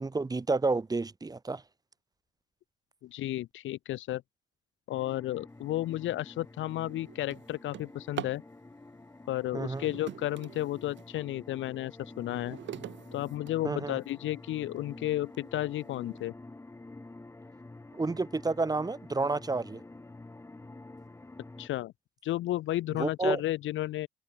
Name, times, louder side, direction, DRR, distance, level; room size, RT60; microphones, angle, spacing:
voice 1, 0.0-1.6 9.5-9.9 13.6-14.0 17.9-19.8 23.0-23.4, right 3 dB, 20° right, 1.1 m, -30 dB
voice 2, 3.0-4.2 4.9-8.4 9.3-12.6 13.1-16.3 21.6-21.9 22.2-24.1, left 15 dB, 75° left, 0.7 m, -33 dB
sound 1, 4.9-21.7, left 2 dB, 15° left, 1.2 m, -49 dB
Drawer open or close, 5.8-6.0 6.5-8.5 9.5-11.1 11.7-14.1 14.8-14.9 15.3-15.4 15.8-16.2, right 11 dB, 70° right, 2.2 m, -44 dB
cardioid pair, 90°, 20 cm